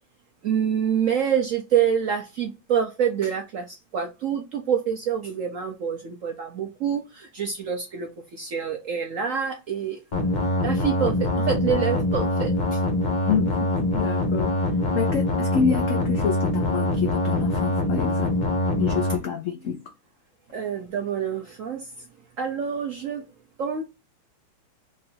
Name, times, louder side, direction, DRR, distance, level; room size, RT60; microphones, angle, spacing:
voice 1, 0.4-10.0 10.6-12.8 20.5-21.9 22.4-23.2 23.6-23.8, right 8 dB, 65° right, 0.8 m, -26 dB
sound 1, 10.1-19.2, left 1 dB, 35° left, 0.7 m, -24 dB
voice 2, 13.2-14.5 14.9-18.3 18.8-19.8, left 7 dB, 80° left, 0.7 m, -27 dB
3.7 x 2.5 x 4.2 m
omnidirectional pair, 2.1 m